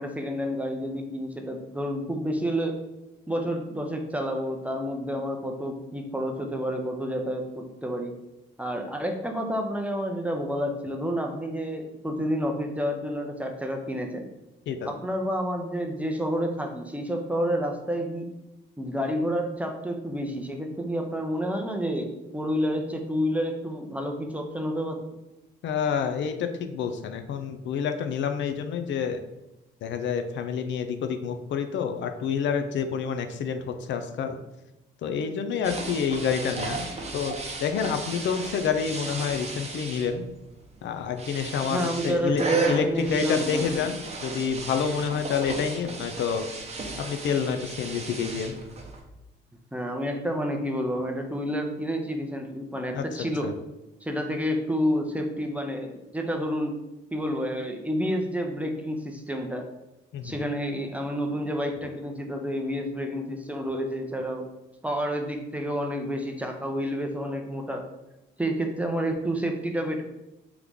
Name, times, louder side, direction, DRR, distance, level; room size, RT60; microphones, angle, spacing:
voice 1, 0.0-2.8 3.3-8.1 8.6-14.3 14.8-18.3 18.8-25.0 41.7-43.8 44.3-44.4 49.7-53.5 54.0-56.8 57.1-59.7 60.2-64.5 64.8-67.9 68.4-70.0, equal, 5° right, 3 dB, 0.6 m, -29 dB
voice 2, 25.6-29.2 29.8-34.4 35.0-36.9 37.1-37.3 37.6-40.3 40.8-46.5 47.0-48.6 52.9-53.5 60.1-60.4, left 6 dB, 70° left, 7 dB, 0.5 m, -28 dB
sound 1, 35.6-49.0, right 3 dB, 35° right, 0.8 m, -34 dB
3.8 x 3.0 x 3.5 m, 0.96 s
cardioid pair, 90°, 20 cm